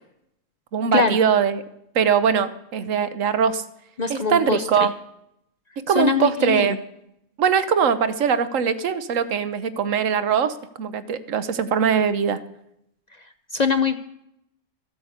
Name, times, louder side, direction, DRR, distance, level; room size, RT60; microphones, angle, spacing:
voice 1, 0.7-1.6 1.9-3.6 4.1-4.9 5.9-6.8 7.4-12.4, right 7 dB, 75° right, 12 dB, 1.2 m, -21 dB
voice 2, 4.0-4.7 5.9-6.8 13.5-14.0, left 5 dB, 45° left, 7 dB, 0.5 m, -22 dB
14.0 x 8.6 x 8.0 m, 0.79 s
omnidirectional pair, 1.4 m